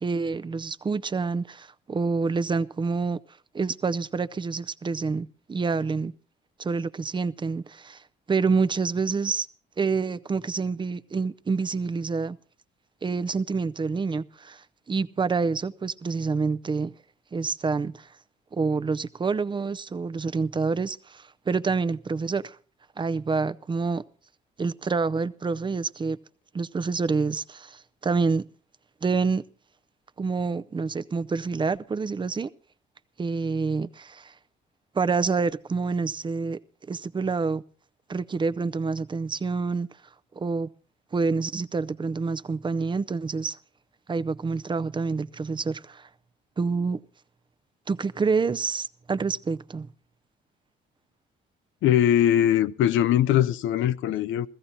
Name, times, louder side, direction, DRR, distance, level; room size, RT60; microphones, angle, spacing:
voice 1, 0.0-3.2 3.5-6.1 6.6-8.0 8.3-9.5 9.8-12.4 13.0-16.9 17.3-18.1 18.5-22.6 23.0-24.0 24.6-26.2 26.5-28.4 29.0-29.4 30.2-32.5 33.2-34.3 34.9-36.6 36.9-37.6 38.1-39.9 40.3-40.7 41.1-43.6 44.1-46.1 46.6-47.0 47.9-49.9, right 4 dB, 25° right, 0.5 m, -27 dB
voice 2, 51.8-54.5, left 11 dB, 80° left, 0.5 m, -21 dB
16.0 x 14.5 x 4.1 m
cardioid pair, 90°, 20 cm